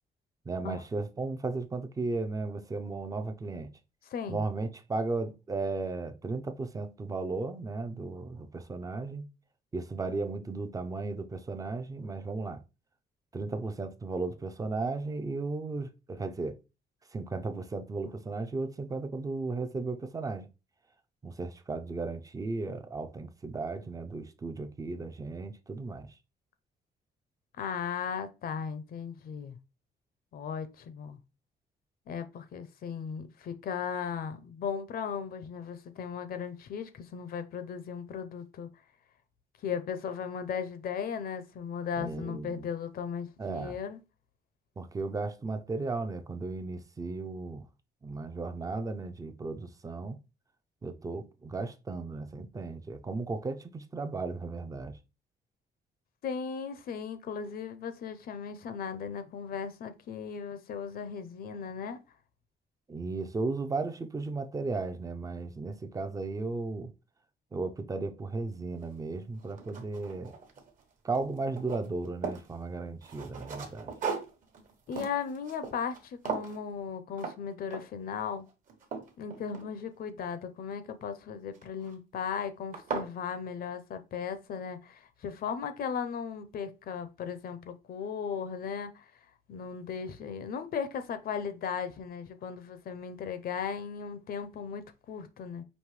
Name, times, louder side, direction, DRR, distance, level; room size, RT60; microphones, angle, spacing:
voice 1, 0.5-3.7 4.3-9.3 9.7-12.6 13.3-16.6 17.1-20.5 21.2-26.1 42.0-42.7 43.4-43.8 44.8-47.7 48.0-50.2 50.8-55.0 62.9-66.9 67.5-70.3 71.0-73.9, right 3 dB, 20° right, 0.5 m, -35 dB
voice 2, 4.1-4.4 27.6-29.6 30.3-31.2 32.1-38.7 39.6-44.0 56.2-62.0 74.9-78.5 79.2-89.1 89.5-95.6, left 7 dB, 60° left, 0.6 m, -37 dB
sound 1, 68.8-68.9 69.4-70.8 71.1-72.5 73.0-76.0 76.3-76.6 77.2-77.4 77.7-78.1 78.5-80.1 81.5-81.9 82.4-82.5 82.7-83.1, right 5 dB, 50° right, 1.1 m, -38 dB
5.3 x 2.6 x 3.1 m
cardioid pair, 140°, 17 cm